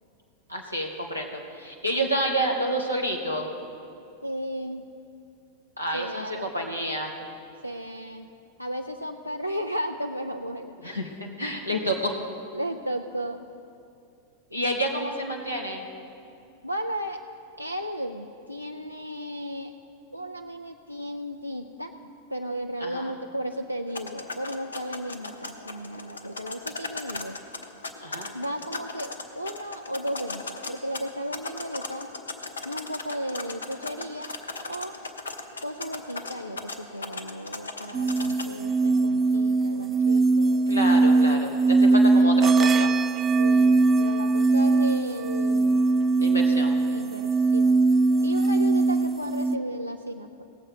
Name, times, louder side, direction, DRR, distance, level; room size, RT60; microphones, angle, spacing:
voice 1, 0.5-3.5 5.8-7.1 10.8-12.2 14.5-15.8 22.8-23.1 28.0-28.3 40.7-42.9 46.2-46.8, equal, 90° right, 0 dB, 1.0 m, -29 dB
voice 2, 4.2-4.9 5.9-6.5 7.6-8.3 8.6-10.7 12.5-13.4 16.6-17.2 17.6-19.7 20.1-21.9 22.3-27.4 28.3-32.1 32.6-34.4 34.6-35.0 35.6-40.5 43.4-45.8 46.9-47.8 48.2-50.4, equal, 90° left, 4 dB, 0.4 m, -34 dB
sound 1, 23.9-38.5, left 3 dB, 75° left, 0.8 m, -38 dB
sound 2, 37.9-49.6, right 3 dB, 20° right, 0.3 m, -21 dB
18.0 x 7.4 x 5.1 m, 2.6 s
figure-of-eight pair, 90°, 0 cm